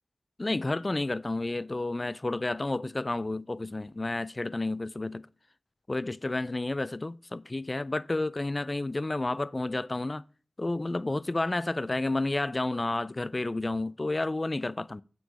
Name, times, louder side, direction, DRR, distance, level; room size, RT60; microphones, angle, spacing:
voice 1, 0.4-5.3 5.9-10.2 10.6-15.0, left 2 dB, 40° left, 0.3 m, -31 dB
7.7 x 6.2 x 4.8 m
cardioid pair, 45°, 0 cm